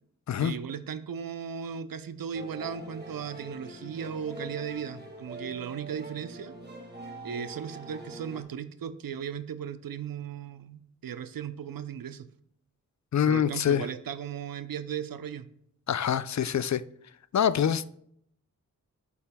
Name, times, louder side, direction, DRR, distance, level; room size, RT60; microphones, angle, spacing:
voice 1, 0.4-6.5 7.2-12.3 13.2-15.4, right 8 dB, 80° right, 0.6 m, -36 dB
sound 1, 2.3-8.4, right 2 dB, 30° right, 1.9 m, -43 dB
voice 2, 13.1-13.9 15.9-16.8 17.3-17.8, left 9 dB, 55° left, 0.4 m, -25 dB
8.4 x 7.1 x 2.2 m
cardioid pair, 45°, 34 cm